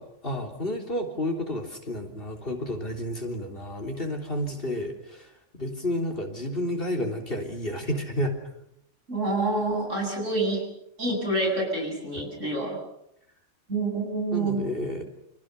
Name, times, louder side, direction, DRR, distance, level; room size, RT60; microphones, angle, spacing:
voice 1, 0.0-5.3 5.6-8.4 12.1-12.2 14.3-15.1, left 1 dB, 50° left, 2 dB, 3.7 m, -31 dB
voice 2, 9.1-10.6 11.0-12.8 13.7-14.6, right 2 dB, 85° right, 1 dB, 8.5 m, -27 dB
29.5 x 26.0 x 6.9 m, 0.77 s
omnidirectional pair, 1.3 m